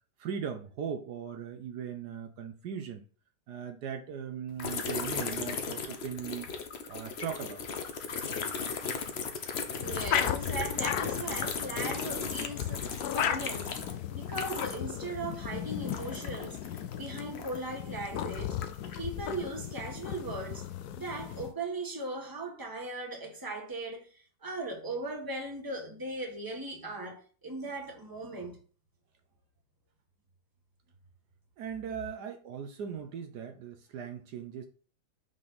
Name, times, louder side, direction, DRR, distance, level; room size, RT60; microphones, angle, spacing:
voice 1, 0.2-3.1 3.5-6.5 6.9-7.6 31.6-34.7, right 7 dB, 70° right, 1.3 m, -39 dB
sound 1, 4.6-15.0 15.2-17.8 18.3-19.1, left 5 dB, 50° left, 0.9 m, -36 dB
sound 2, 9.8-21.5, left 10 dB, 70° left, 1.1 m, -36 dB
voice 2, 9.8-13.8 14.1-16.6 16.9-18.6 19.0-28.6, right 2 dB, 15° right, 1.4 m, -38 dB
5.8 x 5.3 x 4.0 m
omnidirectional pair, 1.9 m